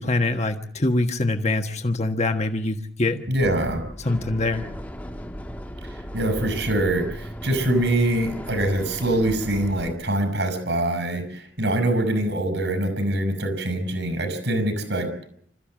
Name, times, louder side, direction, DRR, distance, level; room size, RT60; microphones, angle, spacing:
voice 1, 0.0-3.2 4.0-4.7, left 2 dB, 40° left, 5 dB, 1.5 m, -24 dB
voice 2, 3.3-3.8 5.8-15.1, right 1 dB, 70° right, 10 dB, 5.6 m, -24 dB
sound 1, 3.4-9.9, equal, 10° left, 1.8 m, -36 dB
27.0 x 14.5 x 7.5 m, 0.63 s
head